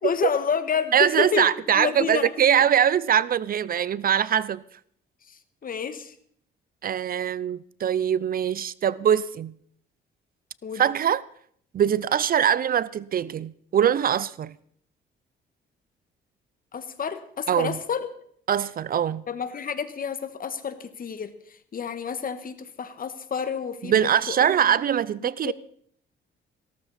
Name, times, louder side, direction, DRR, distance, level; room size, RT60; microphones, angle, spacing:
voice 1, 0.0-1.5 1.7-2.3 5.3-6.1 10.6-10.8 16.7-18.1 19.3-21.3 21.7-24.8 25.2-25.5, left 6 dB, 45° left, 1.5 m, -29 dB
voice 2, 0.9-4.6 6.8-9.5 10.8-11.2 11.7-14.5 17.5-17.8 18.5-19.2 23.9-25.5, right 9 dB, 45° right, 0.5 m, -22 dB
17.0 x 13.5 x 4.2 m
cardioid pair, 90°, 20 cm